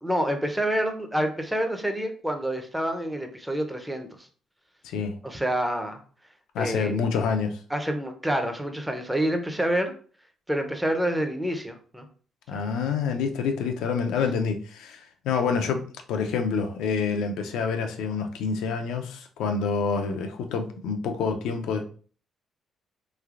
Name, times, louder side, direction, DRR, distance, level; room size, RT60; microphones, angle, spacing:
voice 1, 0.0-4.3 5.2-6.0 6.6-7.0 7.7-9.9 10.5-12.0 12.5-12.6, right 1 dB, 5° right, 5 dB, 0.6 m, -27 dB
voice 2, 4.8-5.2 6.5-7.6 12.5-15.8 16.1-21.8, left 5 dB, 90° left, 5 dB, 0.5 m, -27 dB
3.2 x 3.2 x 2.4 m, 0.43 s
cardioid pair, 90°, 0 cm